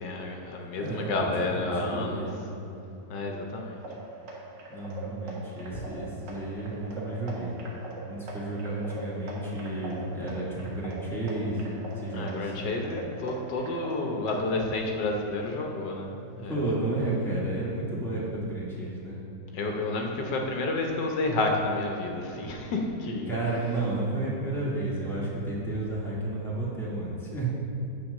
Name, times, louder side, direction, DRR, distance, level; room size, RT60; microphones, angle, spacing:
voice 1, 0.0-2.3 3.1-3.8 5.7-5.8 12.1-16.7 19.5-23.3, left 2 dB, 80° left, 1 dB, 1.5 m, -30 dB
voice 2, 0.7-1.1 1.4-1.5 1.7-2.3 4.7-7.5 8.1-12.7 16.5-19.2 23.3-27.5, right 2 dB, ahead, -7 dB, 1.6 m, -32 dB
sound 1, 3.8-14.6, right 2 dB, 85° right, 1.9 m, -42 dB
8.8 x 4.3 x 6.5 m, 2.9 s
omnidirectional pair, 1.9 m